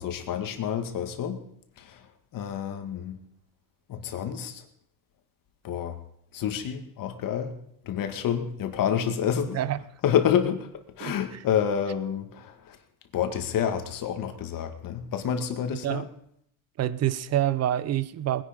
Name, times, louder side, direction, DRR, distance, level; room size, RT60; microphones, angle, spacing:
voice 1, 0.0-1.4 1.8-2.1 2.3-3.2 3.9-4.6 5.6-6.0 6.3-7.5 7.8-9.6 10.0-10.7 11.0-12.8 13.1-16.0, left 8 dB, 45° left, 7 dB, 2.1 m, -28 dB
voice 2, 16.8-18.4, right 12 dB, 35° right, 17 dB, 0.8 m, -26 dB
20.0 x 10.5 x 5.3 m, 0.72 s
supercardioid pair, 120°, 48 cm